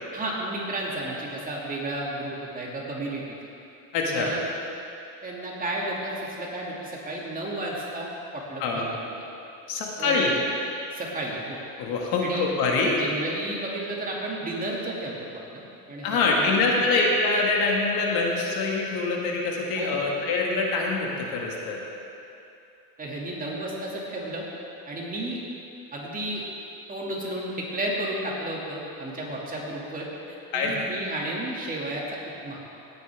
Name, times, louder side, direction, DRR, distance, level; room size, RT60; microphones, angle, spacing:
voice 1, 0.1-3.2 4.1-4.5 5.2-9.2 10.0-10.3 10.9-11.6 12.2-12.5 13.0-15.1 15.5-15.6 15.9-16.9 19.8-20.0 23.0-24.5 24.9-25.4 25.9-26.5 26.9-32.0 32.4-32.6, right 1 dB, 20° right, -4 dB, 2.4 m, -32 dB
voice 2, 3.9-4.3 8.6-8.9 9.7-10.3 11.8-13.0 16.0-21.8 30.5-30.8, left 3 dB, 65° left, -1 dB, 2.1 m, -24 dB
17.5 x 9.3 x 3.6 m, 2.7 s
cardioid pair, 125°, 39 cm